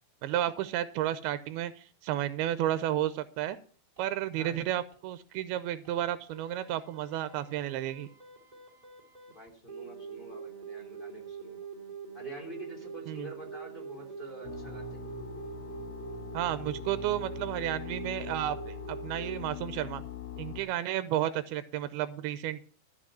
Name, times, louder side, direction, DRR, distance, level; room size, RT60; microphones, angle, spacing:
voice 1, 0.2-3.6 4.0-8.1 13.1-13.3 16.3-20.0 20.4-22.6, right 12 dB, 90° right, 13 dB, 2.7 m, -32 dB
sound 1, 3.0-3.1 3.5-3.6 4.0-4.1 4.5-4.6 4.9-5.0 5.4-5.5 5.8-5.9 6.3-19.4, right 6 dB, 10° right, 2.4 m, -44 dB
voice 2, 9.3-11.7 12.1-15.1, right 1 dB, 15° left, -1 dB, 3.2 m, -47 dB
sound 2, 14.4-20.6, left 9 dB, 85° left, 2.8 m, -42 dB
13.5 x 6.0 x 7.4 m, 0.43 s
omnidirectional pair, 4.4 m